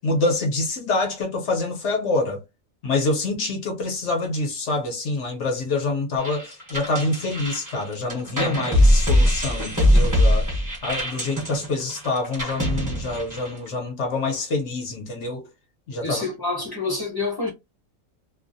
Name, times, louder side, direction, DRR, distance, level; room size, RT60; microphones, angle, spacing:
voice 1, 0.0-2.4 2.8-10.5 10.8-15.4 15.9-16.2, left 2 dB, 60° left, 1.0 m, -26 dB
sound 1, 6.2-13.7, equal, 15° right, 0.7 m, -21 dB
voice 2, 16.0-17.5, left 3 dB, 20° left, 0.7 m, -27 dB
2.6 x 2.0 x 2.5 m
omnidirectional pair, 1.4 m